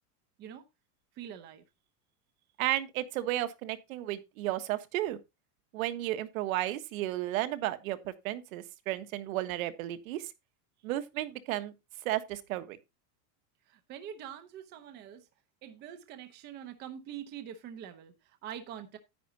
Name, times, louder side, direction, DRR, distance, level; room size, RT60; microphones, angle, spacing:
voice 1, 1.1-1.6 13.7-15.3 15.6-19.0, right 9 dB, 20° right, 0.9 m, -44 dB
voice 2, 2.6-5.2 5.7-10.3 10.8-11.7 12.0-12.8, right 14 dB, 60° right, 1.4 m, -33 dB
10.5 x 10.0 x 2.8 m
supercardioid pair, 180°, 46 cm